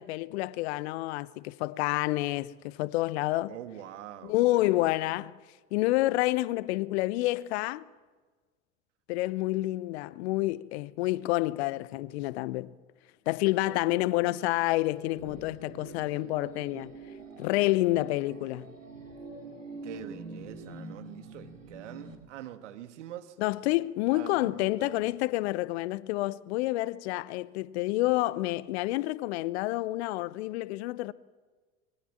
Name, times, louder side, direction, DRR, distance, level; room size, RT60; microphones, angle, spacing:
voice 1, 0.0-3.5 4.2-5.3 5.7-7.8 9.1-12.7 13.3-16.9 17.4-18.7 23.4-31.1, left 18 dB, 55° left, 0.8 m, -28 dB
voice 2, 3.5-4.8 13.6-14.4 19.8-23.3 24.1-25.1, right 11 dB, 65° right, 1.8 m, -45 dB
sound 1, 14.8-22.1, right 3 dB, 90° right, 2.7 m, -45 dB
25.5 x 22.0 x 7.4 m
figure-of-eight pair, 70°, 38 cm